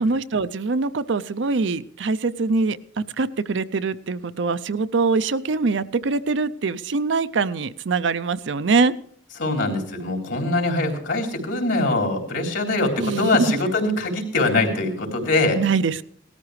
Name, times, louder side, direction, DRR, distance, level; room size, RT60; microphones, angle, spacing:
voice 1, 0.0-2.8 3.2-8.9 13.0-13.6 15.6-16.0, right 4 dB, 65° right, 13 dB, 0.5 m, -23 dB
voice 2, 9.4-15.6, left 2 dB, 70° left, 2 dB, 3.7 m, -23 dB
18.5 x 13.5 x 3.2 m, 0.63 s
head